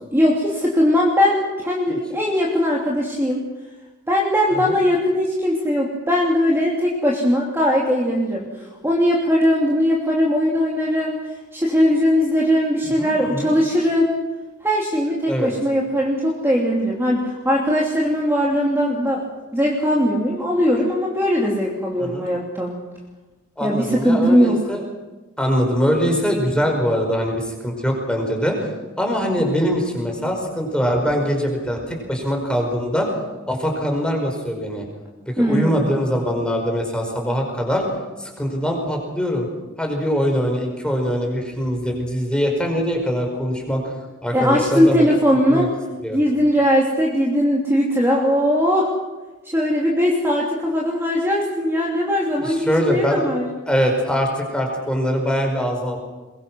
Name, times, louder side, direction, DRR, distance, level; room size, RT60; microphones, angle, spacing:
voice 1, 0.1-3.4 4.1-11.2 11.5-14.1 14.6-19.2 19.5-22.7 23.6-24.6 35.4-35.9 44.3-45.7 46.1-48.9 49.4-53.4, equal, 10° right, -3 dB, 2.8 m, -19 dB
voice 2, 13.0-13.5 15.3-15.5 22.0-22.3 23.6-24.8 25.4-28.7 29.0-33.2 33.5-34.8 35.3-37.8 38.2-39.5 39.8-43.9 44.2-45.0 45.5-45.7 46.0-46.2 52.4-53.2 53.6-56.2, equal, 5° left, 2 dB, 5.0 m, -22 dB
22.5 x 22.0 x 6.2 m, 1.2 s
head